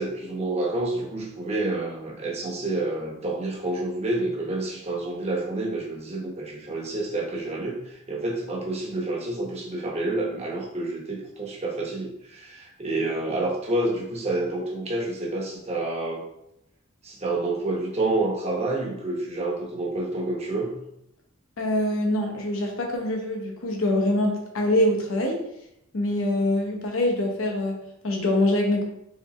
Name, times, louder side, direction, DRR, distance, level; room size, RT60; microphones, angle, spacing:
voice 1, 0.0-16.3 17.0-20.8, right 2 dB, 30° right, -2 dB, 0.9 m, -28 dB
voice 2, 21.6-25.4 25.9-28.8, left 1 dB, 75° left, 2 dB, 0.8 m, -24 dB
4.0 x 3.2 x 3.1 m, 0.80 s
head